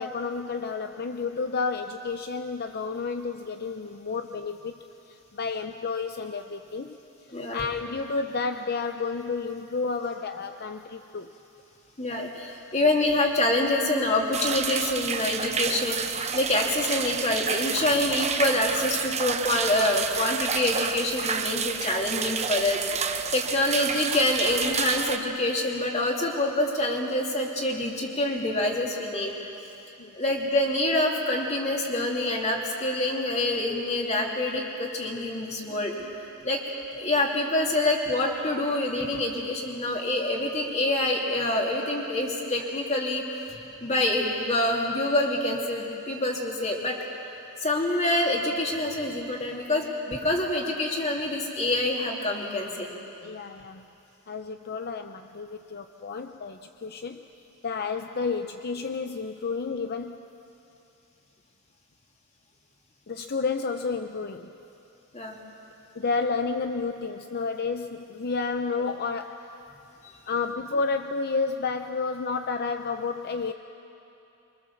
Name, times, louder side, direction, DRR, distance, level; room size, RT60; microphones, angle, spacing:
voice 1, 0.0-7.0 7.5-11.3 16.5-16.6 30.0-30.1 53.2-53.9 54.3-57.3 57.6-60.2 63.1-64.5 66.0-69.5 70.3-73.5, left 4 dB, 45° left, 7 dB, 0.6 m, -31 dB
voice 2, 7.3-7.6 12.0-16.0 16.3-29.3 30.1-36.1 36.4-36.6 36.9-43.2 43.5-47.0 47.6-52.9 65.1-65.4, left 1 dB, 30° left, 0 dB, 2.8 m, -26 dB
sound 1, 14.3-25.2, right 6 dB, 30° right, 0.9 m, -30 dB
24.5 x 24.0 x 7.2 m, 2.9 s
head